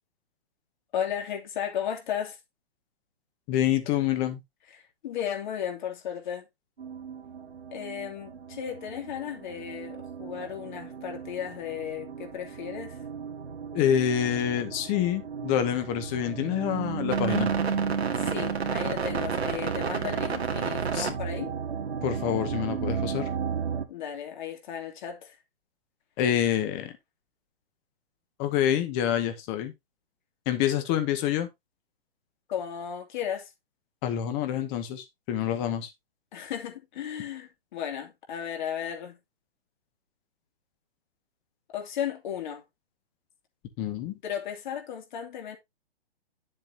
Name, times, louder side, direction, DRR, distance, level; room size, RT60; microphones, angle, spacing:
voice 1, 0.9-2.4 4.7-6.5 7.7-13.0 18.2-21.5 23.9-25.4 32.5-33.5 36.3-39.2 41.7-42.6 44.2-45.6, left 9 dB, 50° left, 2.8 m, -35 dB
voice 2, 3.5-4.4 13.7-17.5 20.9-21.1 22.0-23.3 26.2-26.9 28.4-29.7 30.5-31.5 34.0-35.9 43.8-44.1, left 10 dB, 30° left, 1.8 m, -27 dB
sound 1, 6.8-23.9, right 6 dB, 85° right, 1.9 m, -32 dB
10.0 x 7.4 x 2.8 m
hypercardioid pair, 140°, 31 cm